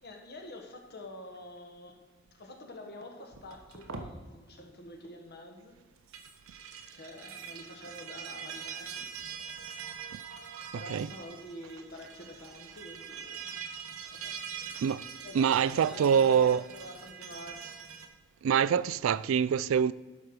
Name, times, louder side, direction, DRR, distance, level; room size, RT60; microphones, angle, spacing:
voice 1, 0.0-2.0 2.4-5.8 6.9-9.0 10.7-13.5 14.0-14.4 14.7-17.6, left 1 dB, 55° left, 1.5 m, -47 dB
sound 1, 3.3-4.1 6.0-18.1, right 7 dB, 85° right, 1.0 m, -43 dB
voice 2, 15.3-16.6 18.4-19.9, right 7 dB, 70° right, 0.3 m, -25 dB
11.0 x 6.2 x 4.9 m
head